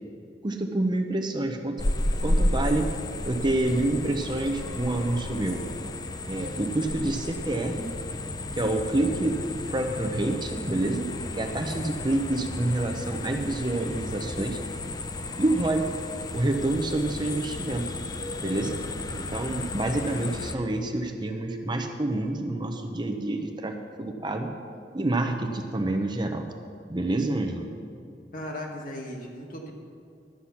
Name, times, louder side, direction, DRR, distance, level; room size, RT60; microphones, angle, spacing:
voice 1, 0.4-1.8 2.2-2.9 3.2-5.6 6.3-7.9 8.5-9.4 9.7-11.1 11.3-14.6 15.4-15.9 16.3-17.9 18.4-18.8 19.1-24.5 24.9-26.5 26.9-27.7, right 2 dB, 25° right, 5 dB, 0.7 m, -27 dB
sound 1, 1.8-20.6, left 1 dB, 25° left, 0.5 m, -33 dB
voice 2, 28.3-29.7, left 1 dB, 50° left, 0 dB, 1.7 m, -37 dB
11.5 x 7.9 x 5.9 m, 2.5 s
head